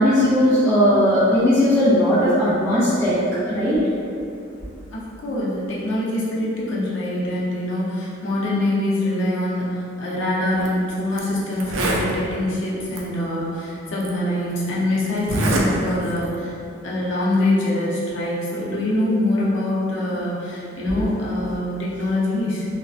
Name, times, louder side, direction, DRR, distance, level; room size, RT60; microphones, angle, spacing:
voice 1, 0.0-3.2 3.5-3.8, equal, 15° left, -15 dB, 0.4 m, -17 dB
voice 2, 4.9-16.6 16.8-22.7, left 1 dB, 80° left, -6 dB, 0.6 m, -24 dB
Zipper (clothing), 10.5-10.7 11.2-11.3 11.5-12.1 12.9-13.0 14.0-14.1 15.2-15.7 16.0-16.3, right 1 dB, 85° right, 0.4 m, -23 dB
2.5 x 2.2 x 2.4 m, 2.5 s
head